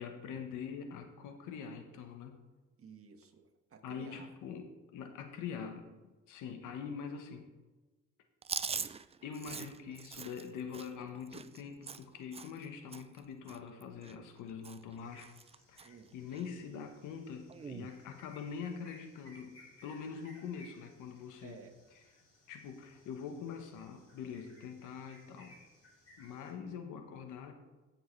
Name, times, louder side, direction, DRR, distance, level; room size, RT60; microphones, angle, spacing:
voice 1, 0.0-2.4 3.8-7.5 9.2-15.3 15.7-21.6 22.5-25.6 26.2-27.5, left 6 dB, 90° left, 6 dB, 1.2 m, -44 dB
voice 2, 2.8-4.3 9.5-9.7 15.8-16.1 21.4-21.8, right 6 dB, 50° right, 5 dB, 1.4 m, -54 dB
Chewing mastication, 8.4-12.7 12.9-13.2 13.5-14.4 14.6-14.9 15.2-15.9 16.3-16.4 17.5-17.9, right 6 dB, 20° right, 0.4 m, -42 dB
Early Bird Wapa di Ume, 15.0-26.5, left 1 dB, 55° left, 3.7 m, -62 dB
16.0 x 6.6 x 3.3 m, 1.2 s
cardioid pair, 90°, 30 cm